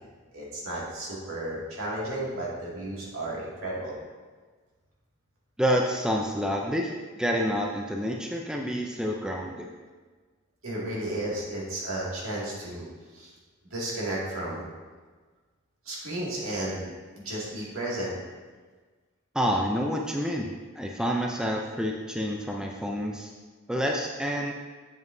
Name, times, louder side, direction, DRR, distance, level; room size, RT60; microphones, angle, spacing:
voice 1, 0.3-4.0 10.6-13.3 13.6-14.6 15.8-18.1, right 1 dB, 75° right, -5 dB, 2.2 m, -33 dB
voice 2, 5.6-6.9 7.2-9.7 19.3-20.5 20.8-23.3 23.7-24.5, equal, 5° right, 0 dB, 0.4 m, -28 dB
8.0 x 7.2 x 2.7 m, 1.4 s
head